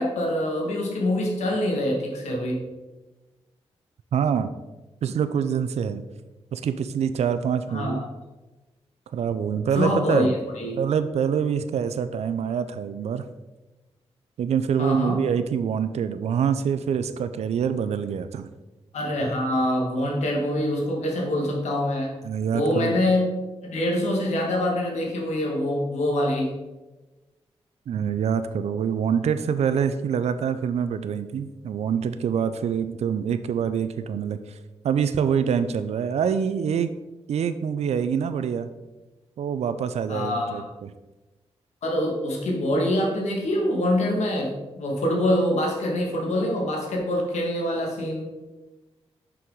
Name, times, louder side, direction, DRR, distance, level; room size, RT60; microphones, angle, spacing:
voice 1, 0.0-2.6 7.7-8.1 9.7-10.8 14.8-15.2 18.9-22.1 22.5-23.3 23.6-26.5 40.1-40.6 41.8-48.3, left 1 dB, 90° left, 0 dB, 1.4 m, -25 dB
voice 2, 4.1-4.5 5.0-6.0 6.5-8.0 9.1-10.3 10.8-13.3 14.4-18.5 22.2-23.0 27.9-34.6 34.8-36.9 37.3-38.7 39.4-40.9, right 7 dB, 70° right, 11 dB, 0.4 m, -25 dB
6.0 x 4.6 x 3.7 m, 1.1 s
cardioid pair, 60°, 11 cm